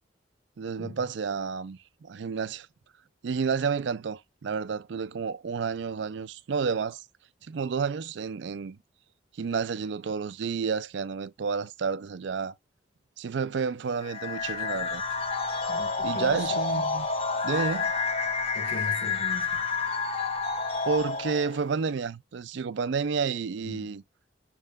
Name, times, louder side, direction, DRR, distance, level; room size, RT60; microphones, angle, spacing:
voice 1, 0.6-2.7 3.2-7.0 7.5-8.8 9.4-12.5 13.2-15.0 16.0-17.1 17.4-17.9 20.9-24.0, right 5 dB, 65° right, 0.4 m, -30 dB
sound 1, 14.0-21.6, left 4 dB, 30° left, 0.7 m, -29 dB
voice 2, 15.7-16.8 18.5-19.6 23.6-23.9, left 2 dB, 70° left, 1.1 m, -40 dB
6.5 x 3.6 x 2.3 m
head